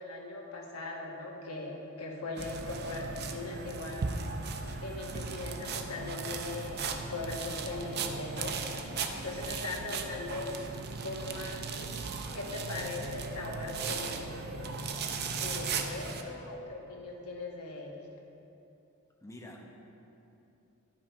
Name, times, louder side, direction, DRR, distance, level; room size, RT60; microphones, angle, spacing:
voice 1, 0.0-4.1 4.8-8.5 9.2-10.6 11.0-12.1 12.3-14.4 15.3-18.1, left 3 dB, 85° left, -1 dB, 1.2 m, -40 dB
sound 1, 2.4-16.2, right 4 dB, 50° right, 0.6 m, -37 dB
voice 2, 16.0-16.5 19.2-19.7, left 1 dB, 15° left, 0 dB, 0.9 m, -50 dB
10.0 x 6.0 x 4.5 m, 2.9 s
head